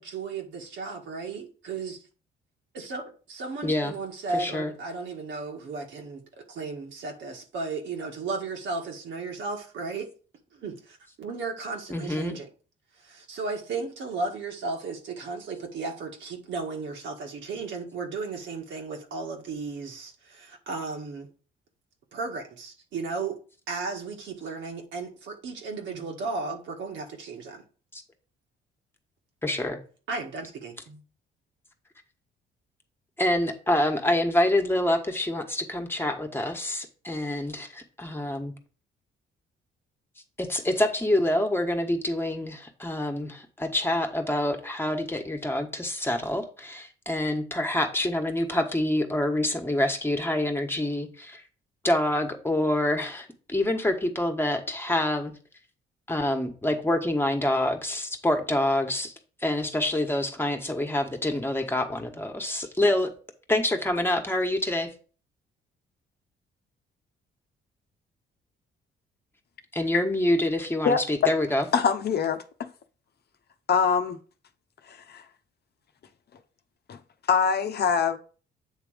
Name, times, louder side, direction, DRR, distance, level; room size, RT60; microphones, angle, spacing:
voice 1, 0.0-2.0 2.7-10.1 10.5-12.5 13.0-21.3 22.1-23.4 23.7-27.6 30.1-31.0, right 3 dB, 70° right, 1.8 m, -35 dB
voice 2, 3.6-3.9 4.3-4.7 11.9-12.3 27.9-28.0 29.4-29.8 33.2-38.5 40.4-51.4 51.8-55.3 56.1-59.1 59.4-63.1 63.5-64.9 69.7-71.7, left 1 dB, 10° left, 1.4 m, -26 dB
voice 3, 71.7-72.4 73.7-74.2 74.9-75.2 76.9-77.0 77.3-78.2, left 6 dB, 55° left, 0.8 m, -23 dB
8.2 x 3.4 x 5.0 m
cardioid pair, 90°, 20 cm